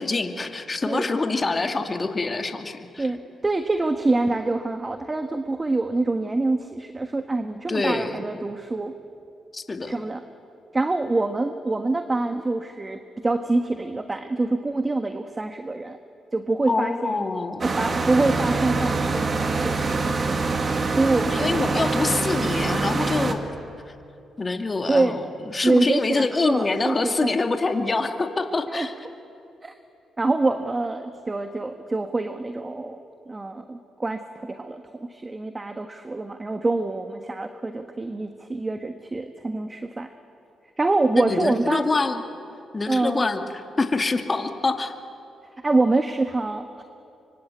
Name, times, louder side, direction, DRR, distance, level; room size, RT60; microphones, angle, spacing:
voice 1, 0.0-3.1 7.7-8.3 9.5-10.0 16.7-17.6 21.3-23.4 24.4-28.9 41.1-42.2 42.7-44.9, left 3 dB, 35° left, 6 dB, 2.4 m, -25 dB
voice 2, 3.0-8.9 9.9-10.2 10.7-16.0 16.3-17.2 17.6-20.6 20.9-21.9 24.9-25.2 25.6-27.3 28.7-28.9 29.6-29.7 30.2-40.1 40.8-41.9 42.9-43.3 45.6-46.8, right 2 dB, 25° right, 7 dB, 1.5 m, -25 dB
sound 1, 17.6-23.3, right 3 dB, 45° right, 2.4 m, -25 dB
25.0 x 25.0 x 8.4 m, 2.7 s
supercardioid pair, 60°, 0 cm